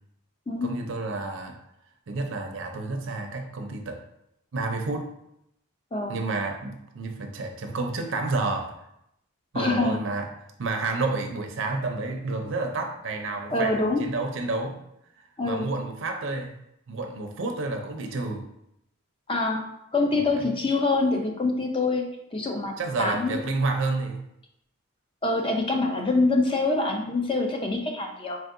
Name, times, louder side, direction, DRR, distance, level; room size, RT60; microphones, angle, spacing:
voice 1, 0.6-1.6 2.1-4.0 4.5-5.1 6.1-8.8 9.5-10.3 10.6-14.8 15.4-16.6 16.9-18.5 20.1-20.5 22.8-24.3, right 3 dB, 60° right, 3 dB, 0.5 m, -30 dB
voice 2, 9.5-10.0 13.5-14.0 15.4-15.7 19.3-19.6 19.9-23.4 25.2-28.4, left 2 dB, 25° left, 2 dB, 0.4 m, -25 dB
4.1 x 2.7 x 2.5 m, 0.79 s
head